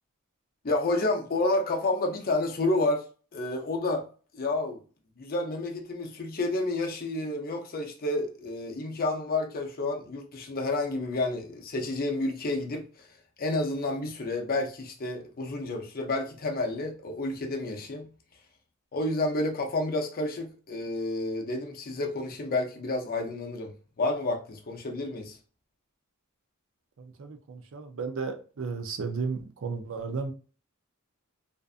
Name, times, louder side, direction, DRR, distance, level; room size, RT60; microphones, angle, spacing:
voice 1, 0.6-3.0 3.3-4.1 4.3-4.8 5.2-13.1 13.4-18.1 18.9-25.4, left 2 dB, 45° left, 0.5 m, -30 dB
voice 2, 27.0-30.3, right 4 dB, 65° right, 0.5 m, -34 dB
2.5 x 2.4 x 2.4 m
head